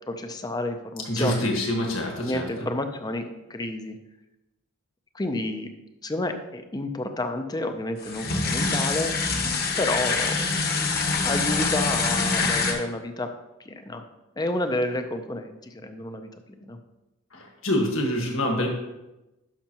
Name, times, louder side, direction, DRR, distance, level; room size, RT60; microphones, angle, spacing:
voice 1, 0.1-1.4 2.2-4.0 5.1-5.7 6.0-9.2 9.8-10.6 11.2-13.3 13.7-14.0 14.4-16.3 16.6-16.8, left 1 dB, 20° left, 7 dB, 0.5 m, -30 dB
voice 2, 1.1-2.5 17.3-18.7, left 1 dB, 65° left, 1 dB, 1.6 m, -26 dB
sound 1, 8.0-12.7, left 4 dB, 45° left, 1.1 m, -25 dB
11.5 x 5.7 x 2.9 m, 0.99 s
head